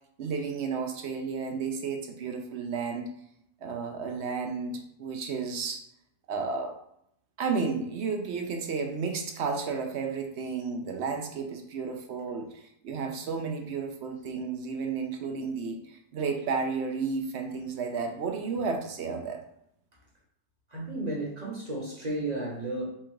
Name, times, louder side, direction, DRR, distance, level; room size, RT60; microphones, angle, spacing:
voice 1, 0.2-3.1 3.6-5.8 6.3-6.7 7.4-19.4, right 5 dB, 60° right, 3 dB, 0.7 m, -32 dB
voice 2, 20.7-22.9, right 2 dB, 30° right, -4 dB, 1.0 m, -33 dB
4.4 x 2.4 x 4.6 m, 0.74 s
omnidirectional pair, 1.6 m